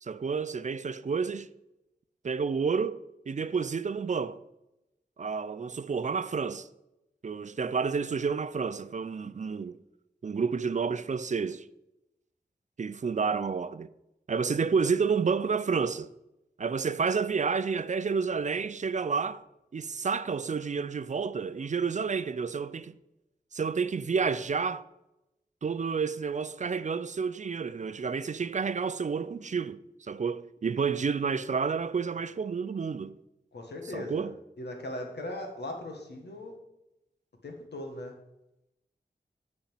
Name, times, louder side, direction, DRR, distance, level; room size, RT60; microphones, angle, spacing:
voice 1, 0.0-1.5 2.2-3.0 3.3-4.4 5.2-6.7 7.2-9.8 10.2-11.6 12.8-13.9 14.3-16.1 16.6-19.4 19.7-22.9 23.5-24.8 25.6-33.1 33.9-34.3, right 5 dB, 45° right, 0.4 m, -30 dB
voice 2, 33.5-34.3 34.6-36.5 37.4-38.1, left 1 dB, 80° left, 1.6 m, -39 dB
8.7 x 4.3 x 7.2 m
wide cardioid pair, 75°, 17 cm